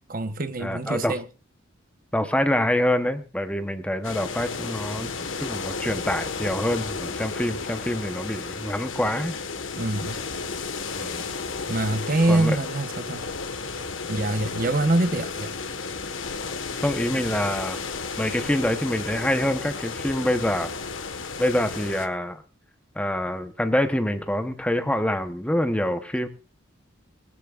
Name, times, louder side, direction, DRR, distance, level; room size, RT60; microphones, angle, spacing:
voice 1, 0.1-1.2 9.8-10.2 11.7-13.3 14.1-15.5, right 2 dB, 45° right, 1.0 m, -24 dB
voice 2, 0.6-1.2 2.1-5.1 5.4-9.3 10.9-11.2 12.3-12.5 16.8-17.8 18.2-20.7 21.4-22.4 22.9-26.3, left 1 dB, 5° left, 0.9 m, -26 dB
sound 1, 4.0-22.1, left 4 dB, 75° left, 1.4 m, -33 dB
20.0 x 15.5 x 2.5 m
head